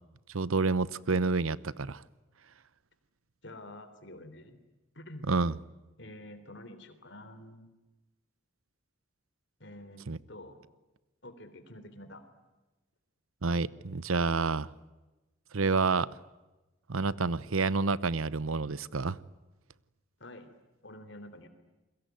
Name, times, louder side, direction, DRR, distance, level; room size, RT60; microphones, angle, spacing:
voice 1, 0.3-2.0 5.3-5.6 10.1-10.2 13.4-14.7 15.5-16.1 16.9-19.2, right 4 dB, 85° right, 19 dB, 0.8 m, -28 dB
voice 2, 3.4-4.6 5.0-5.3 6.0-7.7 9.6-10.6 11.2-12.2 20.2-20.6 20.8-21.5, left 1 dB, 60° left, 11 dB, 3.5 m, -48 dB
29.0 x 22.0 x 9.4 m, 1.1 s
head